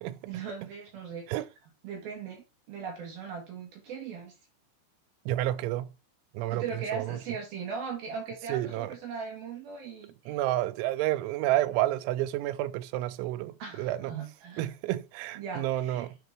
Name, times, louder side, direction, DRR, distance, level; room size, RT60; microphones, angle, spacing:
voice 1, 0.3-1.3 1.8-4.3 6.5-10.4 13.6-14.7 15.4-16.1, right 6 dB, 60° right, 3.2 m, -39 dB
voice 2, 5.3-5.9 6.3-7.2 8.5-8.9 10.3-14.1 14.6-16.2, right 14 dB, 85° right, 3.0 m, -30 dB
10.5 x 4.5 x 3.4 m
omnidirectional pair, 5.4 m